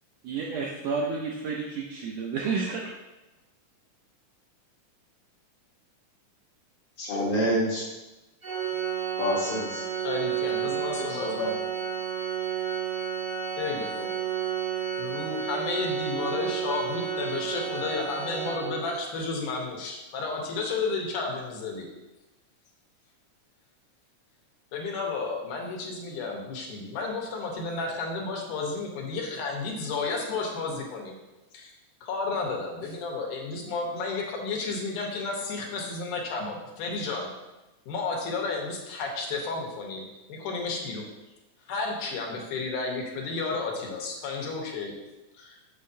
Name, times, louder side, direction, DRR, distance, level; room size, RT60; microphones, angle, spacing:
voice 1, 0.2-2.9, right 4 dB, 80° right, -1 dB, 1.5 m, -30 dB
voice 2, 7.0-7.8 9.2-9.8 10.8-11.5, equal, 60° left, -4 dB, 1.6 m, -28 dB
Organ, 8.4-19.1, right 8 dB, 60° right, 1.1 m, -31 dB
voice 3, 10.0-11.6 13.6-14.1 15.0-21.9 24.7-31.2 31.5-31.7 32.0-37.3 37.9-41.1 41.7-44.9 45.3-45.6, left 3 dB, 80° left, 0 dB, 2.5 m, -32 dB
6.4 x 6.3 x 2.7 m, 1.0 s
omnidirectional pair, 3.6 m